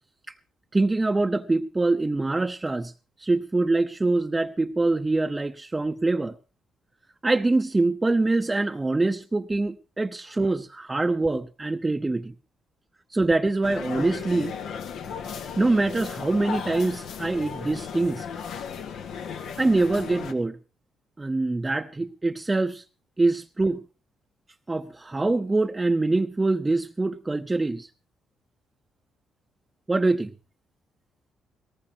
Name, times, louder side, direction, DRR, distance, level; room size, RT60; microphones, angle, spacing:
voice 1, 0.7-2.9 3.2-6.4 7.2-12.3 13.1-14.6 15.6-18.3 19.6-20.6 21.2-22.8 23.2-23.8 24.7-27.9 29.9-30.3, right 2 dB, 20° right, 6 dB, 0.8 m, -24 dB
sound 1, 13.6-20.3, left 7 dB, 75° left, 1.7 m, -35 dB
19.5 x 18.0 x 2.8 m, 0.32 s
cardioid pair, 90°, 0 cm